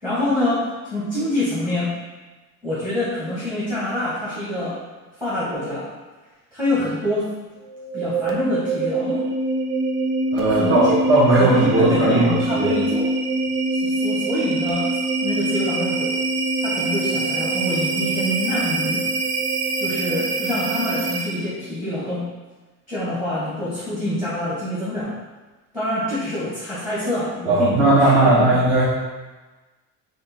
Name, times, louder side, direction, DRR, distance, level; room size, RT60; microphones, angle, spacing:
voice 1, 0.0-2.0 2.6-4.8 5.2-5.9 6.5-7.3 7.9-9.3 10.5-10.8 11.4-13.1 13.7-14.9 15.2-16.1 16.6-19.0 19.8-22.3 22.9-25.2 25.7-28.5, left 1 dB, 5° right, -10 dB, 1.2 m, -26 dB
sound 1, 7.6-21.5, right 2 dB, 70° right, 0.7 m, -24 dB
voice 2, 10.3-12.8 27.5-28.9, right 2 dB, 30° right, -9 dB, 1.2 m, -17 dB
3.6 x 2.5 x 4.2 m, 1.2 s
cardioid pair, 125°, 41 cm